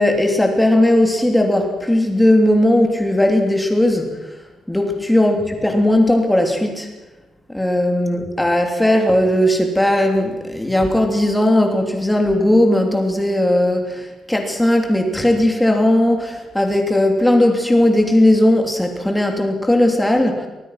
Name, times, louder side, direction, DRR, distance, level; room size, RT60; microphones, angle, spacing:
voice 1, 0.0-4.4 4.7-6.9 7.5-20.5, left 1 dB, 5° left, 3 dB, 3.1 m, -17 dB
24.5 x 19.5 x 6.0 m, 1.1 s
cardioid pair, 170°, 0 cm